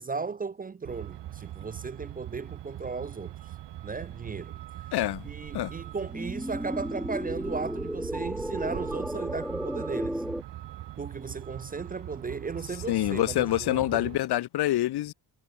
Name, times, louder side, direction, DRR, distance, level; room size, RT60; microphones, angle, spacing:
voice 1, 0.0-3.3 3.8-4.6 5.3-10.2 11.0-14.1, right 4 dB, 20° right, 0.4 m, -36 dB
Truck, 0.8-14.2, right 13 dB, 80° right, 3.1 m, -42 dB
voice 2, 4.9-5.3 5.5-5.7 12.9-15.1, left 14 dB, 65° left, 0.8 m, -26 dB
sound 1, 6.1-10.4, equal, ahead, 1.1 m, -33 dB
supercardioid pair, 60°, 42 cm